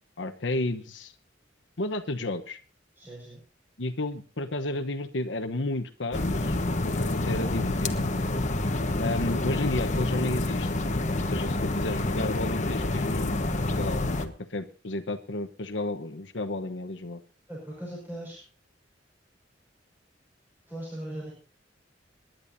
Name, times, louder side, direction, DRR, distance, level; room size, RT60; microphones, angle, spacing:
voice 1, 0.2-1.1 1.8-2.6 3.8-6.6 6.8-7.9 9.0-10.7 11.3-13.5 13.8-17.2, left 2 dB, 80° left, 8 dB, 1.1 m, -32 dB
voice 2, 3.0-3.4 17.5-18.4 20.7-21.3, right 1 dB, 10° right, -4 dB, 5.7 m, -39 dB
sound 1, 6.1-14.3, left 2 dB, 40° left, 1.3 m, -28 dB
28.0 x 10.5 x 2.7 m, 0.38 s
head